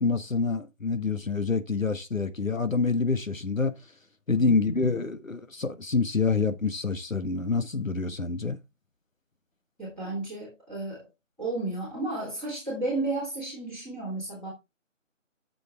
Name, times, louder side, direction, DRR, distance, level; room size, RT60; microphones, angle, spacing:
voice 1, 0.0-3.7 4.3-8.6, left 4 dB, 85° left, 1.4 m, -27 dB
voice 2, 4.3-4.9 9.8-11.1 11.4-14.5, right 2 dB, ahead, 2.0 m, -33 dB
9.8 x 6.9 x 3.4 m
figure-of-eight pair, 160°, 39 cm